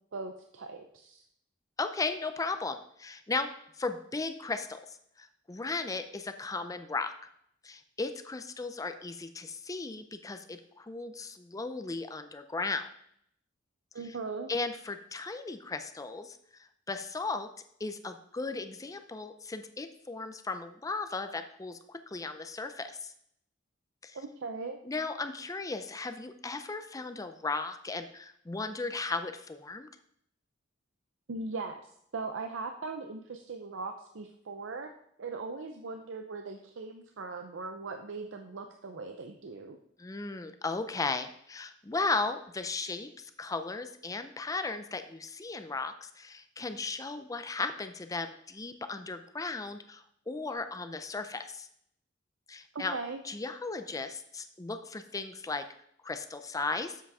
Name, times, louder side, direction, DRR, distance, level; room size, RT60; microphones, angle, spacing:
voice 1, 0.1-1.2 13.9-14.5 24.1-24.8 31.3-31.8 32.1-34.9 35.2-39.8 52.7-53.2, right 3 dB, 75° right, 5 dB, 0.6 m, -39 dB
voice 2, 1.8-3.5 3.8-7.3 7.6-12.9 14.1-14.2 14.5-16.4 16.9-17.5 17.8-23.1 24.0-24.2 24.9-29.9 40.0-51.7 52.5-53.0 53.2-55.6 56.0-57.0, left 3 dB, 20° left, 9 dB, 0.4 m, -36 dB
7.6 x 5.7 x 4.8 m, 0.70 s
head